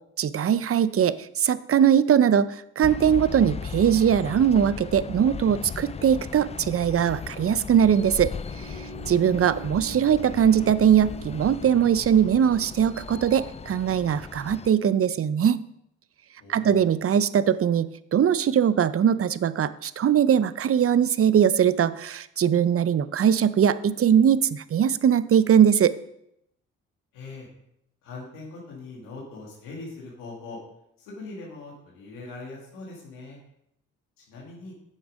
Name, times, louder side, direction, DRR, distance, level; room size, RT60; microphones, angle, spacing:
voice 1, 0.2-8.3 8.7-15.6 16.5-26.0, right 8 dB, 45° right, 16 dB, 0.6 m, -21 dB
sound 1, 2.8-14.7, left 6 dB, 20° left, 0.3 m, -37 dB
Bowed string instrument, 8.2-12.3, right 8 dB, 75° right, 1.3 m, -44 dB
voice 2, 16.4-16.9 27.1-27.5 28.0-30.6 31.0-33.4 34.2-34.7, left 3 dB, 90° left, -3 dB, 2.3 m, -41 dB
9.3 x 6.9 x 5.2 m, 0.77 s
supercardioid pair, 50°, 32 cm